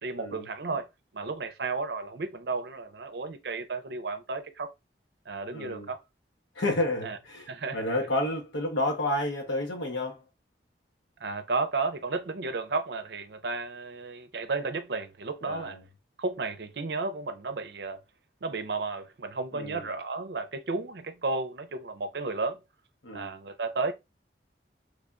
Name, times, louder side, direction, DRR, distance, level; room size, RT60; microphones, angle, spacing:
voice 1, 0.0-0.9 1.1-4.7 5.3-6.0 7.0-7.2 7.5-7.9 11.2-15.8 16.2-18.0 18.4-22.6 23.1-23.9, right 3 dB, 65° right, 0.6 m, -33 dB
voice 2, 5.5-5.9 6.5-10.2 15.4-15.8 19.5-19.8 23.0-23.3, left 1 dB, 90° left, 0.8 m, -30 dB
3.4 x 3.3 x 2.4 m
head